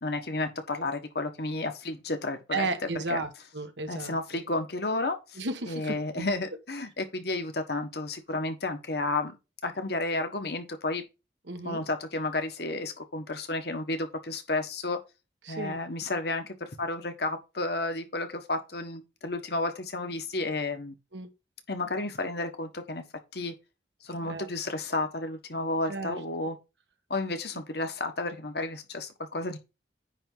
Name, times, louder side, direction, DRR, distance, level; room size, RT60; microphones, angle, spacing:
voice 1, 0.0-2.7 3.1-3.2 3.9-5.4 5.7-9.4 9.6-11.0 11.6-15.0 15.5-21.0 21.7-23.0 23.3-23.5 24.0-26.6 27.1-29.6, left 2 dB, 60° left, 1.4 m, -32 dB
voice 2, 2.5-4.4 5.4-6.2 11.4-11.8 15.4-15.8 21.1-21.3 24.2-24.5 25.9-26.2, right 3 dB, 70° right, 1.3 m, -34 dB
9.8 x 3.5 x 5.4 m
head